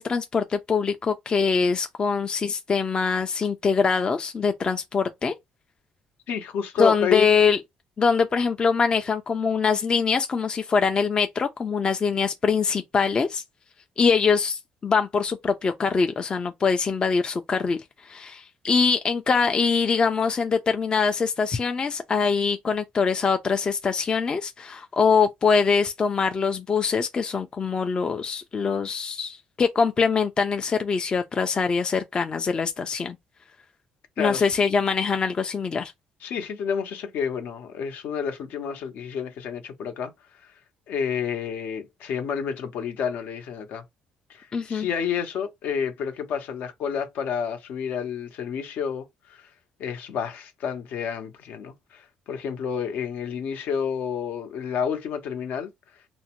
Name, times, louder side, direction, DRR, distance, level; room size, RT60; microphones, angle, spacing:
voice 1, 0.0-5.3 6.8-7.6 8.0-13.4 14.0-33.2 34.2-35.9 44.5-44.9, left 5 dB, 30° left, 0.4 m, -23 dB
voice 2, 6.3-7.3 34.2-34.5 36.2-40.1 40.4-40.5 40.9-43.8 44.3-49.5 49.8-55.7, left 7 dB, 70° left, 0.7 m, -30 dB
2.5 x 2.1 x 2.9 m
cardioid pair, 115°, 3 cm